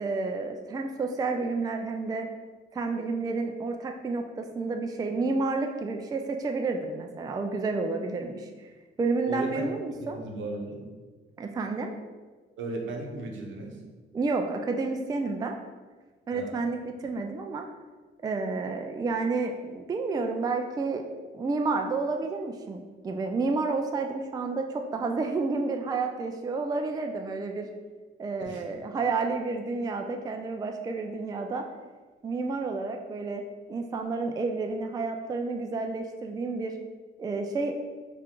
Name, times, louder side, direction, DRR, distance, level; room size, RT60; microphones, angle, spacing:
voice 1, 0.0-2.3 2.7-8.7 9.0-10.2 11.4-11.9 14.1-15.6 16.3-17.7 18.2-21.0 21.3-27.7 28.2-31.6 32.2-33.4 33.7-36.8 37.2-37.7, right 3 dB, 20° right, 4 dB, 0.3 m, -30 dB
voice 2, 9.3-9.6 10.0-10.9 12.6-13.8 16.3-16.6 28.4-28.6, right 3 dB, 75° right, 1 dB, 0.8 m, -36 dB
3.6 x 2.5 x 4.4 m, 1.4 s
cardioid pair, 90°, 20 cm